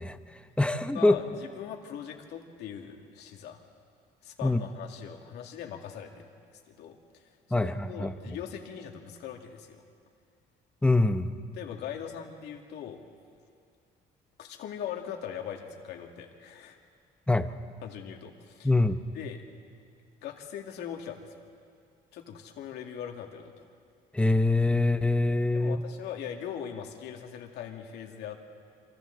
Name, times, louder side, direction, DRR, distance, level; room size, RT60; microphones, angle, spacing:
voice 1, 0.0-1.2 4.4-4.6 7.5-8.1 10.8-11.3 17.3-17.5 18.6-19.0 24.1-25.8, left 2 dB, 5° left, 9 dB, 0.9 m, -24 dB
voice 2, 0.9-3.6 4.2-9.8 11.5-13.0 14.4-16.8 17.8-18.7 19.1-19.4 20.2-21.4 22.1-23.7 25.5-28.5, left 9 dB, 80° left, 2 dB, 2.3 m, -41 dB
27.5 x 26.0 x 4.0 m, 2.3 s
cardioid pair, 110°, 17 cm